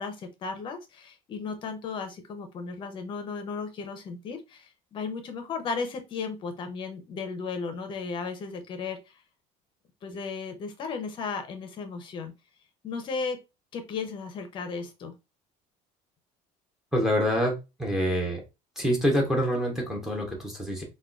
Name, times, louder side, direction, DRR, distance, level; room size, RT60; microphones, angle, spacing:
voice 1, 0.0-9.2 10.0-12.3 12.8-13.4 13.7-15.1, left 5 dB, 35° left, 7 dB, 0.6 m, -35 dB
voice 2, 16.9-18.4 18.8-20.8, equal, 5° right, 0 dB, 0.7 m, -26 dB
3.5 x 2.2 x 2.4 m, 0.25 s
cardioid pair, 165°, 15 cm